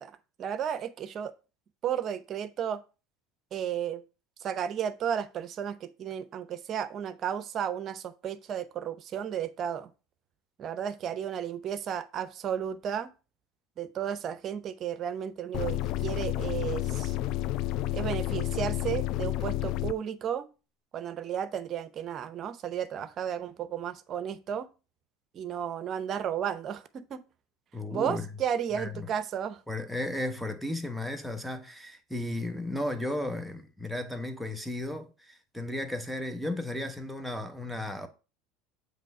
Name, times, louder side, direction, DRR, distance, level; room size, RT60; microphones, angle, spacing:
voice 1, 0.0-1.3 1.8-2.8 3.5-4.0 4.4-9.9 10.6-13.1 13.8-17.2 17.9-20.5 20.9-24.7 25.3-27.2 27.9-29.6, right 9 dB, 45° right, 0.7 m, -33 dB
sound 1, 15.5-19.9, left 15 dB, 60° left, 0.4 m, -30 dB
voice 2, 27.7-28.2 28.8-28.9 29.7-38.1, left 1 dB, ahead, 1.1 m, -34 dB
7.3 x 3.2 x 5.4 m
hypercardioid pair, 85°, 0 cm